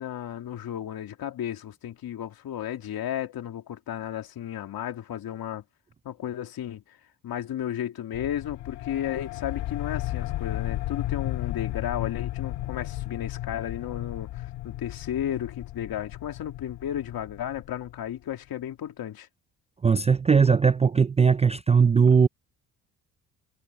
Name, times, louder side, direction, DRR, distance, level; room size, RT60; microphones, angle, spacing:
voice 1, 0.0-5.6 6.0-7.0 7.2-19.3, left 10 dB, 65° left, 2.8 m, -33 dB
sound 1, 8.1-18.3, left 15 dB, 85° left, 2.3 m, -34 dB
voice 2, 19.8-22.3, right 6 dB, 20° right, 0.3 m, -19 dB
cardioid pair, 75°, 39 cm